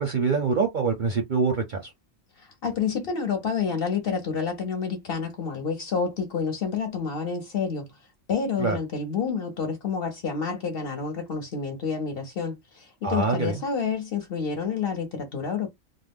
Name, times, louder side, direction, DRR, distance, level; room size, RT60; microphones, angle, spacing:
voice 1, 0.0-1.8 8.6-8.8 13.0-13.6, right 5 dB, 50° right, 0.6 m, -24 dB
voice 2, 2.4-7.9 8.3-15.7, left 5 dB, 55° left, 0.8 m, -29 dB
2.4 x 2.1 x 3.4 m
omnidirectional pair, 1.4 m